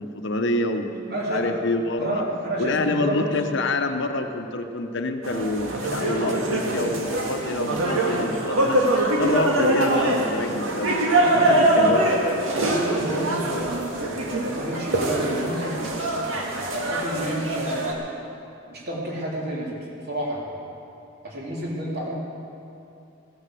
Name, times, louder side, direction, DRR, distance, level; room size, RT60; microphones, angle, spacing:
voice 1, 0.0-2.2 2.6-8.8 9.2-11.0 11.3-12.4, left 2 dB, 65° left, 6 dB, 1.0 m, -27 dB
voice 2, 1.1-1.6 2.0-3.3 11.2-11.9 12.5-13.9 14.3-15.9 16.7-18.0 18.7-20.5 21.2-22.1, right 1 dB, 55° right, -4 dB, 3.5 m, -30 dB
sound 1, 5.2-17.9, right 1 dB, 80° right, 2.0 m, -23 dB
16.0 x 10.0 x 7.8 m, 2.7 s
head